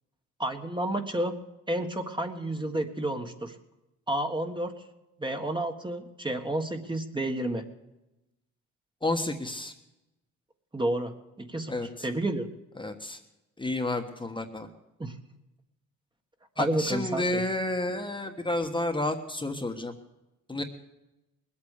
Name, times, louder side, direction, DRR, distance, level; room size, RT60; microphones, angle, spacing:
voice 1, 0.4-1.4 1.7-3.5 4.1-4.7 5.2-7.6 10.7-11.1 11.4-12.5 15.0-15.1 16.6-17.4, right 1 dB, 15° right, 4 dB, 1.6 m, -30 dB
voice 2, 9.0-9.7 11.7-11.9 12.8-13.2 13.6-14.7 16.6-19.9 20.5-20.6, left 2 dB, 15° left, 4 dB, 1.4 m, -30 dB
20.0 x 8.7 x 6.6 m, 0.95 s
cardioid pair, 90°, 30 cm